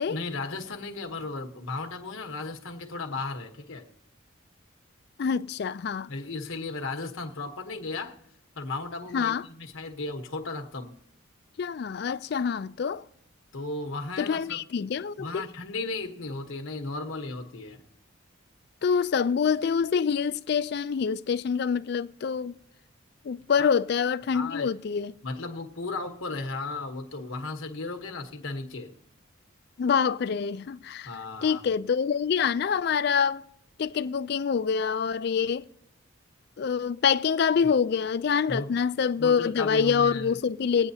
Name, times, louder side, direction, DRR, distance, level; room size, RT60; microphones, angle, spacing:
voice 1, 0.1-3.9 6.1-8.2 8.5-10.9 13.5-14.6 15.2-17.8 23.6-23.7 24.3-24.7 25.2-28.9 31.0-31.6 38.5-38.7 39.2-40.4, left 3 dB, 75° left, 1.1 m, -35 dB
voice 2, 5.2-6.1 9.1-9.5 11.6-13.0 14.2-15.4 18.8-22.5 23.2-25.1 29.8-31.1 31.4-33.4 33.8-35.7 36.6-40.9, left 6 dB, 50° left, 0.3 m, -26 dB
21.5 x 8.9 x 2.8 m
head